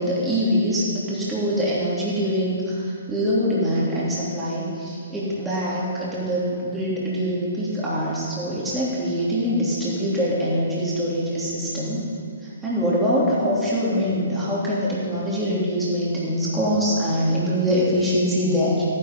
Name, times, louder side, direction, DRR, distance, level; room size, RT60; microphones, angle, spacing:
voice 1, 0.0-12.0 12.4-18.8, equal, 5° right, -8 dB, 3.1 m, -24 dB
15.0 x 9.8 x 5.3 m, 2.3 s
figure-of-eight pair, 125°, 0 cm